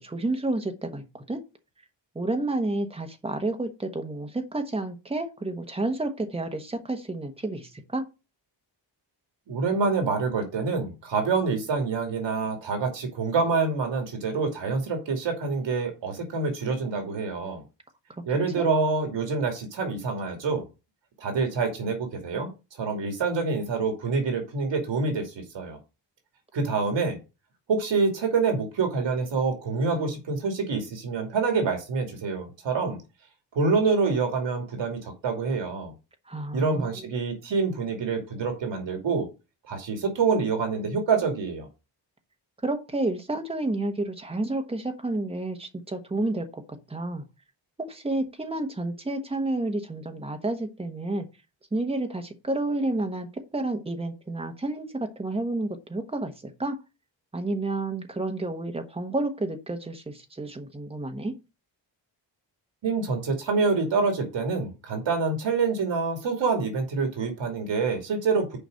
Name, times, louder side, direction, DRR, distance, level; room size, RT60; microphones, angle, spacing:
voice 1, 0.0-1.4 2.1-8.0 18.6-18.7 36.3-36.9 42.6-46.6 46.9-47.2 47.8-51.2 51.7-56.8 57.3-61.3, right 2 dB, 15° right, 1.2 m, -30 dB
voice 2, 9.5-17.6 18.3-20.6 21.2-22.5 22.8-25.8 26.5-27.2 27.7-33.0 33.5-35.9 36.5-39.3 39.7-41.7 62.8-68.6, right 4 dB, 75° right, 2.7 m, -26 dB
6.8 x 5.1 x 6.4 m
wide cardioid pair, 180°, 44 cm